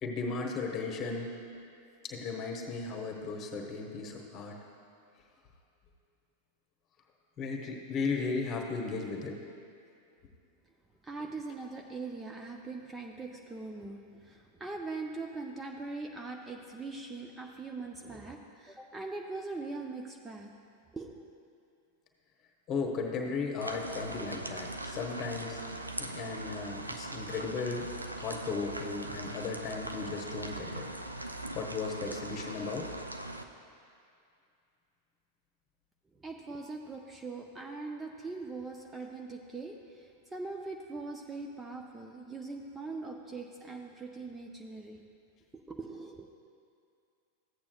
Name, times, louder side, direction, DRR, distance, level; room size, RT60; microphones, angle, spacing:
voice 1, 0.0-1.3 2.0-4.6 7.4-9.4 22.7-25.6 26.0-27.9 28.2-30.8 31.5-32.9, left 4 dB, 30° left, 2 dB, 1.2 m, -36 dB
voice 2, 11.0-20.5 20.9-21.3 36.2-45.0 45.5-46.3, right 3 dB, 10° right, 2 dB, 0.5 m, -41 dB
sound 1, 23.6-33.4, right 1 dB, 85° right, 0.4 m, -40 dB
14.5 x 8.6 x 2.3 m, 2.4 s
figure-of-eight pair, 90°, 0 cm